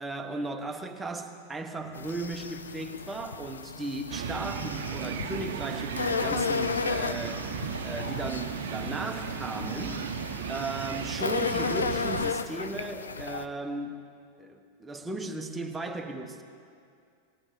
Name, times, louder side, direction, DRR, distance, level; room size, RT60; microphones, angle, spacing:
voice 1, 0.0-7.5 7.8-10.0 10.5-14.0 14.4-16.4, right 2 dB, 10° right, 5 dB, 1.2 m, -36 dB
sound 1, 1.9-13.4, left 5 dB, 70° left, 0.5 m, -34 dB
sound 2, 4.1-12.3, right 7 dB, 60° right, 0.9 m, -35 dB
19.5 x 18.5 x 3.9 m, 2.4 s
figure-of-eight pair, 90°, 0 cm